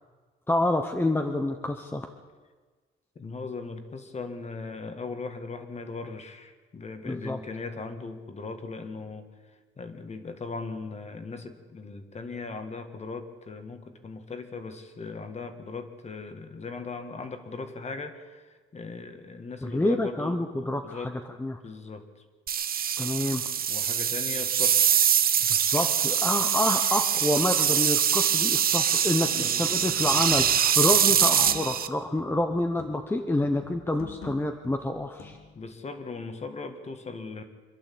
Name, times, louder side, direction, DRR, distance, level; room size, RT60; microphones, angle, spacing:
voice 1, 0.5-2.1 7.1-7.4 19.6-21.1 21.4-21.6 23.0-23.4 25.5-35.4, left 1 dB, 10° left, 5 dB, 1.0 m, -28 dB
voice 2, 3.2-9.3 9.8-21.2 21.6-22.2 23.7-24.9 29.4-29.5 35.6-37.4, left 4 dB, 30° left, 8 dB, 1.9 m, -38 dB
sound 1, 22.5-31.9, right 8 dB, 45° right, 0.9 m, -24 dB
sound 2, 30.5-30.6 30.9-31.9 32.2-33.2 33.4-35.7, left 5 dB, 85° left, 3.0 m, -45 dB
26.0 x 12.0 x 8.6 m, 1.4 s
cardioid pair, 150°, 21 cm